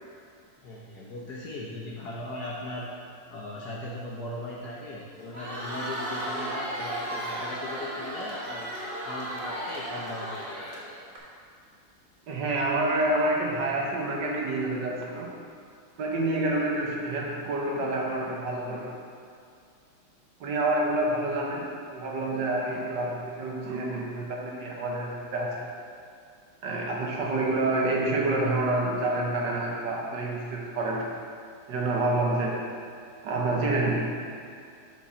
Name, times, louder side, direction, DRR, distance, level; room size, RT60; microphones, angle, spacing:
voice 1, 0.6-2.9 3.3-8.7 9.1-11.0, left 1 dB, 65° left, -4 dB, 1.0 m, -38 dB
Crowd, 5.2-11.2, right 1 dB, 35° right, 1.0 m, -35 dB
voice 2, 12.3-15.3 16.0-18.9 20.4-21.6 21.9-25.7 26.6-31.0 31.7-32.6 33.2-34.0, right 2 dB, 65° right, -2 dB, 1.4 m, -28 dB
6.3 x 5.6 x 4.2 m, 2.4 s
omnidirectional pair, 2.3 m